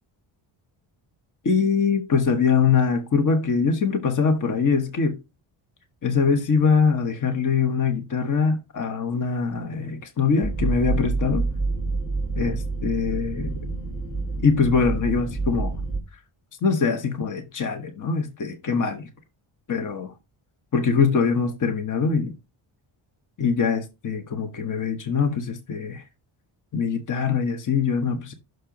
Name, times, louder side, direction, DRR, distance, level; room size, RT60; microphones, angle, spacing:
voice 1, 1.4-5.2 6.0-11.5 12.4-13.6 14.4-15.7 16.6-19.1 19.7-20.1 20.7-22.3 23.4-26.0 26.7-28.3, left 5 dB, 40° left, 1.2 m, -23 dB
sound 1, 10.4-16.0, right 3 dB, 10° left, 1.1 m, -27 dB
6.5 x 4.3 x 5.1 m
cardioid pair, 130°, 49 cm